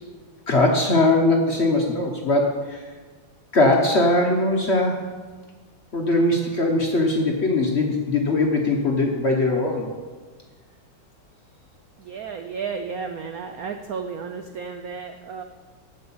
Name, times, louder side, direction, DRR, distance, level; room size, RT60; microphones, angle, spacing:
voice 1, 0.5-2.9 3.5-5.1 5.9-9.9, left 2 dB, 50° left, 1 dB, 0.8 m, -20 dB
voice 2, 12.0-15.4, right 5 dB, 80° right, 6 dB, 0.8 m, -33 dB
8.1 x 7.8 x 7.2 m, 1.4 s
omnidirectional pair, 2.2 m